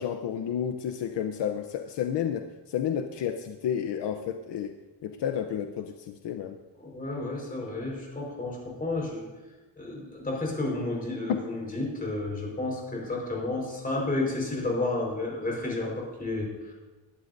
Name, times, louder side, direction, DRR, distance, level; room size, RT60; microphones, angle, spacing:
voice 1, 0.0-4.7 5.0-6.6, left 8 dB, 70° left, 6 dB, 0.9 m, -31 dB
voice 2, 6.8-9.2 9.8-16.7, left 2 dB, 20° left, -2 dB, 4.6 m, -31 dB
21.0 x 11.5 x 2.7 m, 1.2 s
cardioid pair, 145°, 45 cm